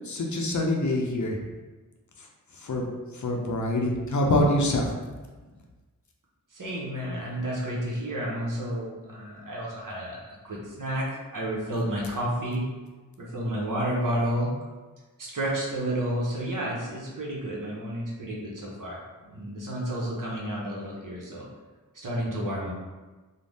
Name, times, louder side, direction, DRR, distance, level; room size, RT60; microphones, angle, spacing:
voice 1, 0.1-1.4 2.6-2.9 3.2-4.9, left 1 dB, 55° left, 0 dB, 0.5 m, -25 dB
voice 2, 6.5-11.1 11.3-12.6 13.2-14.5 15.2-19.0 19.3-21.5 21.9-22.7, right 1 dB, 65° right, -4 dB, 0.8 m, -31 dB
2.5 x 2.1 x 3.3 m, 1.3 s
wide cardioid pair, 45°, 35 cm